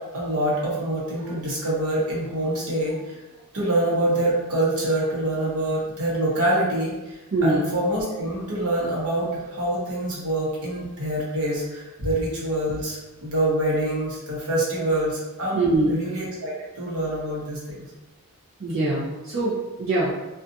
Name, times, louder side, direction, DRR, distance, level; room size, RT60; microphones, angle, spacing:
voice 1, 0.1-3.2 3.5-17.9, right 1 dB, 80° right, -5 dB, 0.9 m, -26 dB
voice 2, 7.3-7.7 15.5-16.0 18.6-20.1, right 2 dB, 55° right, -10 dB, 0.6 m, -23 dB
2.6 x 2.3 x 2.5 m, 1.1 s
head